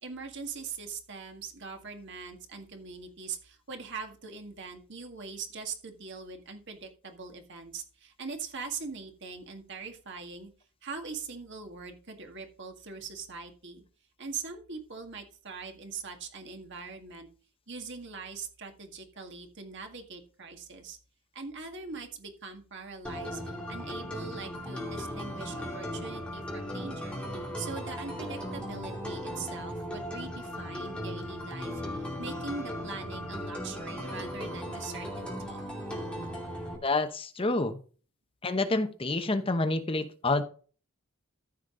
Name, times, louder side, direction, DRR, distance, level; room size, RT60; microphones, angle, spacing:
voice 1, 0.0-10.5 10.8-13.8 14.2-17.3 17.7-21.0 21.3-27.2 27.6-31.8 32.2-35.6, right 4 dB, 55° right, 4 dB, 1.8 m, -42 dB
sound 1, 23.0-36.8, equal, 5° left, 2.5 m, -37 dB
voice 2, 36.8-37.8 38.4-40.4, left 2 dB, 25° left, 8 dB, 0.8 m, -28 dB
14.0 x 5.2 x 3.8 m, 0.39 s
head